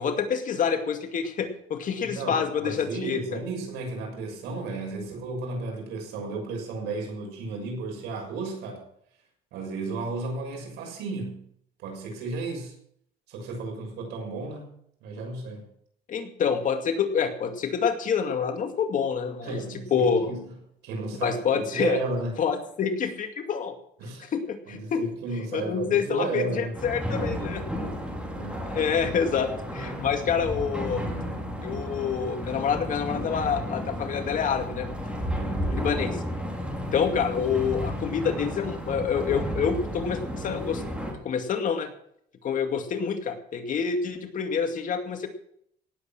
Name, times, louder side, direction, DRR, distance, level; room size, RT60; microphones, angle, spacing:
voice 1, 0.0-3.2 16.1-20.3 21.2-22.0 22.4-23.8 24.3-25.0 25.5-27.6 28.7-31.0 31.6-34.9 35.7-36.2 36.9-40.8 41.2-41.9 42.4-45.3, left 6 dB, 50° left, 6 dB, 2.3 m, -27 dB
voice 2, 2.0-8.8 9.5-11.5 11.8-12.7 13.3-14.7 15.0-15.7 19.4-20.4 20.8-22.4 24.0-24.3 24.7-26.8 28.3-28.8 35.3-35.8, right 3 dB, 85° right, 1 dB, 6.6 m, -33 dB
sound 1, 26.7-41.1, equal, 5° right, 5.1 m, -33 dB
17.5 x 8.4 x 6.3 m, 0.68 s
cardioid pair, 110°, 17 cm